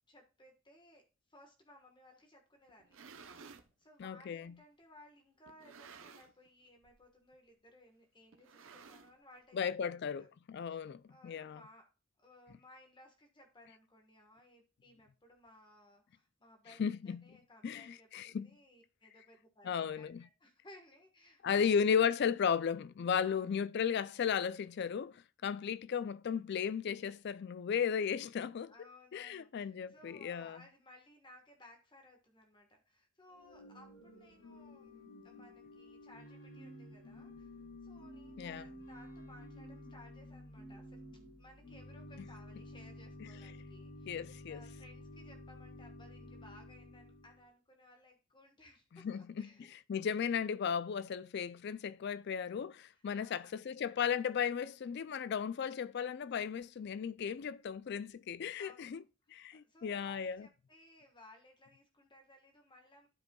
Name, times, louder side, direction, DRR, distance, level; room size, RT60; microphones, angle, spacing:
voice 1, 0.1-1.0 1.3-3.0 3.4-3.5 3.8-10.3 10.7-11.9 12.2-21.8 23.2-23.5 28.7-41.0 41.4-49.7 52.9-53.7 58.6-63.1, left 1 dB, 25° left, 1.3 m, -61 dB
sound 1, 2.7-3.7 4.5-4.6 5.5-6.5 6.8-7.1 7.3-7.4 8.3-9.4, right 5 dB, 75° right, 0.7 m, -55 dB
voice 2, 4.0-4.5 9.5-11.6 16.8-17.2 17.6-18.5 19.6-20.2 21.4-28.7 29.1-30.6 38.4-38.6 44.1-44.6 49.0-59.0 59.3-60.5, left 7 dB, 55° left, 0.3 m, -35 dB
Organ / Church bell, 33.3-47.5, left 1 dB, 85° left, 2.7 m, -52 dB
11.5 x 5.2 x 2.3 m
head